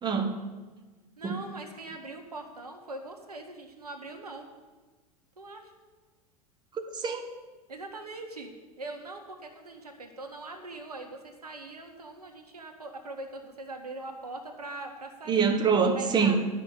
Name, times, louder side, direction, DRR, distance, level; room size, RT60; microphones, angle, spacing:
voice 1, 0.0-0.3 1.2-1.4 6.7-7.2 15.3-16.4, right 6 dB, 20° right, 5 dB, 1.4 m, -25 dB
voice 2, 1.2-4.5 5.4-5.7 7.7-8.5 8.8-15.5 16.0-16.4, right 2 dB, 80° right, 4 dB, 1.7 m, -42 dB
11.0 x 6.2 x 8.6 m, 1.3 s
figure-of-eight pair, 85°, 19 cm